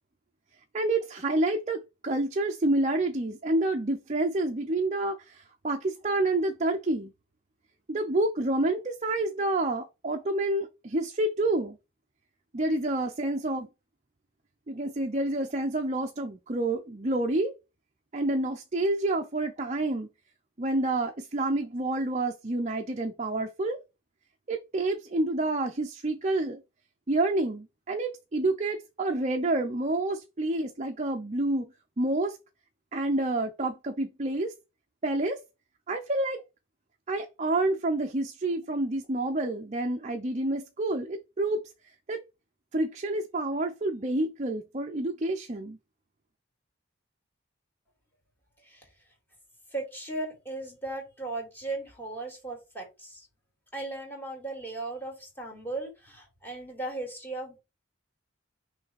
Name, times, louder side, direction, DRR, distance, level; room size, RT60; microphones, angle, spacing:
voice 1, 0.7-7.1 7.9-11.8 12.5-13.7 14.7-17.5 18.1-20.1 20.6-23.8 24.5-26.6 27.1-31.7 32.0-32.4 32.9-34.5 35.0-35.4 35.9-36.4 37.1-41.6 42.1-42.2 42.7-45.8, right 2 dB, 35° right, 0.6 m, -28 dB
voice 2, 49.7-53.3 53.7-57.6, right 2 dB, 10° left, 2.4 m, -37 dB
6.1 x 3.3 x 4.6 m
head